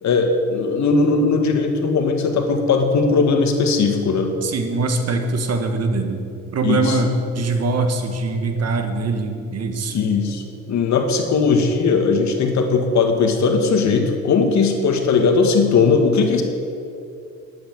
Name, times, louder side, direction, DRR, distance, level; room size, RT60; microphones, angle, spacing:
voice 1, 0.0-4.3 6.6-7.0 9.9-16.4, left 4 dB, 65° left, 4 dB, 1.8 m, -18 dB
voice 2, 4.4-6.2 6.5-10.0, right 3 dB, 55° right, 5 dB, 1.7 m, -22 dB
10.5 x 8.7 x 8.7 m, 2.5 s
cardioid pair, 90°, 30 cm